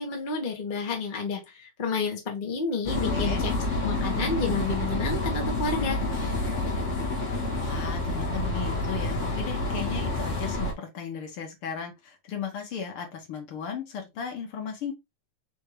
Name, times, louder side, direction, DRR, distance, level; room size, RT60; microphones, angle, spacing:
voice 1, 0.0-3.5 3.8-6.0, left 4 dB, 85° left, 0.4 m, -30 dB
sound 1, 2.8-10.7, left 2 dB, 40° left, 1.1 m, -28 dB
voice 2, 3.1-3.4 7.6-14.9, left 7 dB, 55° left, 1.7 m, -36 dB
4.6 x 3.5 x 3.1 m
omnidirectional pair, 3.4 m